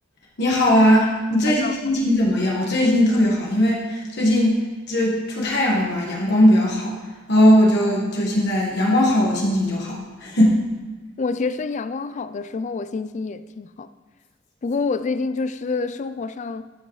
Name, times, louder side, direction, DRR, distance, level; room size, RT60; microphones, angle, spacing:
voice 1, 0.4-6.9 7.3-10.6, left 1 dB, 60° left, 1.5 m, -19 dB
voice 2, 11.2-13.9 14.6-16.7, left 4 dB, 35° left, 0.3 m, -27 dB
12.5 x 6.5 x 3.2 m
head